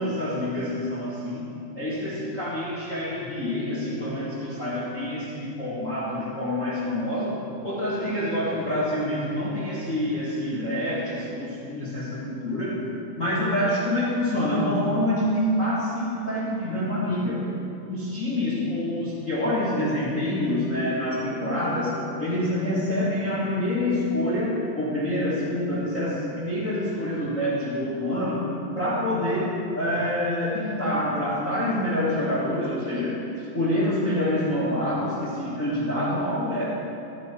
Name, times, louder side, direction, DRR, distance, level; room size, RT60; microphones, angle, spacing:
voice 1, 0.0-1.5 1.7-12.8 13.2-17.4 17.9-28.4 28.7-36.6, left 1 dB, 80° left, -7 dB, 0.7 m, -26 dB
15.0 x 14.0 x 4.5 m, 2.7 s
omnidirectional pair, 5.2 m